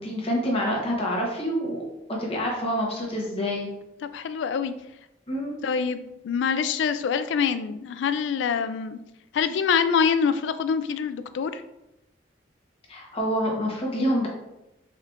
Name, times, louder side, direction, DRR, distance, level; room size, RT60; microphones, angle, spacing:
voice 1, 0.0-1.8 2.1-3.7 5.3-5.6 12.9-14.3, equal, 30° left, -2 dB, 0.9 m, -27 dB
voice 2, 4.1-4.7 5.6-9.0 9.3-11.6, left 6 dB, 85° left, 12 dB, 0.3 m, -25 dB
4.3 x 3.6 x 2.4 m, 0.92 s
head